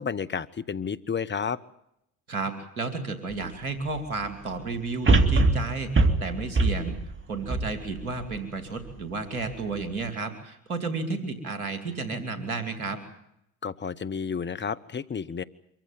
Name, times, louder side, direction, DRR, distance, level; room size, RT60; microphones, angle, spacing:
voice 1, 0.0-1.6 13.6-15.4, left 6 dB, 25° left, 15 dB, 1.0 m, -31 dB
voice 2, 2.3-7.0 7.3-13.0, right 3 dB, 85° right, 9 dB, 2.8 m, -32 dB
sound 1, 3.3-3.4 5.1-8.4 8.9-9.0, right 2 dB, 30° right, 2.4 m, -22 dB
24.5 x 15.0 x 9.4 m, 0.79 s
figure-of-eight pair, 60°, 42 cm